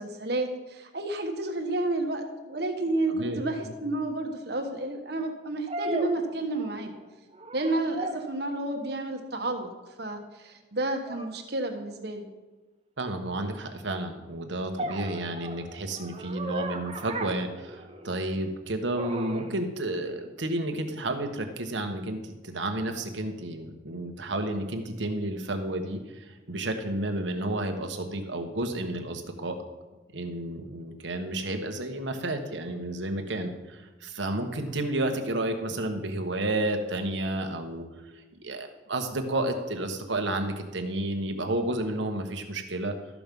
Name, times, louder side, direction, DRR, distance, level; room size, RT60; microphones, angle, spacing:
voice 1, 0.0-6.9 7.5-9.7 10.0-12.2, right 2 dB, 60° right, 4 dB, 1.4 m, -30 dB
voice 2, 3.1-3.7 13.0-29.6 30.1-37.8 38.4-42.9, right 1 dB, 80° right, 5 dB, 1.3 m, -31 dB
sound 1, 3.3-3.4 5.7-7.0 7.3-8.4 11.1-11.3 14.8-18.3 18.9-19.5, right 2 dB, 30° right, 0.9 m, -37 dB
13.5 x 6.1 x 5.3 m, 1.2 s
head